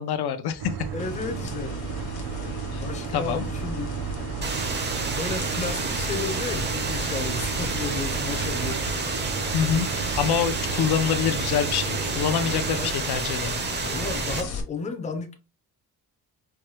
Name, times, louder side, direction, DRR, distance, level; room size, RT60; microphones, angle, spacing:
voice 1, 0.0-0.9 2.7-2.8 3.1-3.5 9.5-13.6, left 8 dB, 75° left, 0.6 m, -26 dB
sound 1, 0.6-12.9, right 8 dB, 85° right, 0.7 m, -34 dB
voice 2, 0.9-1.8 2.8-4.0 5.2-8.9 12.8-13.0 13.9-15.3, left 4 dB, 20° left, 0.5 m, -33 dB
sound 2, 1.0-14.6, left 3 dB, 50° left, 0.9 m, -36 dB
sound 3, 4.4-14.4, right 4 dB, 30° right, 0.5 m, -30 dB
4.5 x 2.2 x 3.1 m
wide cardioid pair, 175°, 39 cm